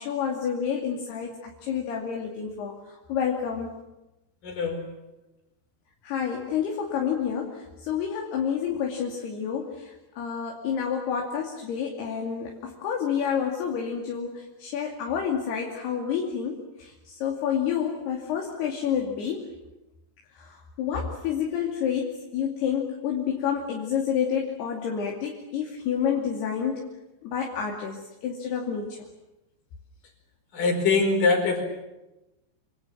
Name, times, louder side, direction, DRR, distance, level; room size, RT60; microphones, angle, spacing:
voice 1, 0.0-2.8 3.1-3.7 6.0-19.5 20.4-26.9 27.2-29.0, left 7 dB, 65° left, 0 dB, 4.5 m, -29 dB
voice 2, 4.4-4.9 30.5-31.6, left 4 dB, 50° left, 4 dB, 6.4 m, -23 dB
27.5 x 27.5 x 7.6 m, 0.98 s
omnidirectional pair, 5.2 m